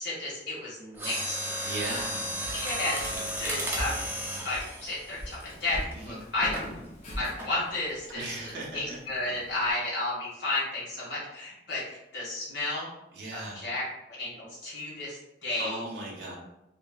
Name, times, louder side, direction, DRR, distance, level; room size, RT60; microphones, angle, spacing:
voice 1, 0.0-1.4 2.5-3.0 3.4-4.0 4.4-6.6 7.2-11.8 12.1-12.9 13.3-15.8, left 2 dB, 75° left, -7 dB, 1.4 m, -32 dB
Mechanisms, 0.9-5.9 6.5-6.7 7.4-7.7 8.0-8.1, equal, 10° right, 0.4 m, -34 dB
Walk footsteps, 1.5-9.7, equal, 40° left, 0.6 m, -43 dB
voice 2, 1.6-2.3 5.9-6.2 8.1-9.0 13.1-13.6 15.6-16.4, right 2 dB, 70° right, -3 dB, 0.6 m, -37 dB
3.0 x 2.5 x 2.3 m, 0.90 s
head